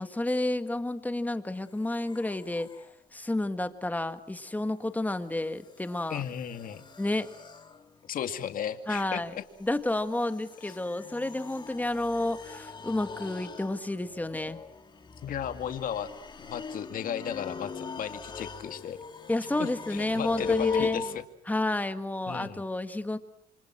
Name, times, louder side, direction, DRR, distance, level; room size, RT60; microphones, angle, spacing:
voice 1, 0.0-2.7 3.1-6.2 7.0-7.3 8.9-14.6 19.3-21.0 21.5-23.2, left 2 dB, 10° left, 10 dB, 1.7 m, -30 dB
sound 1, 1.9-2.9 5.0-21.2, left 5 dB, 25° left, 2.3 m, -40 dB
voice 2, 6.1-6.8 8.1-9.4 15.2-16.1 16.4-19.0 19.6-21.2 22.3-22.6, left 9 dB, 55° left, 8 dB, 2.2 m, -35 dB
28.5 x 25.0 x 6.2 m, 0.69 s
cardioid pair, 110°, 17 cm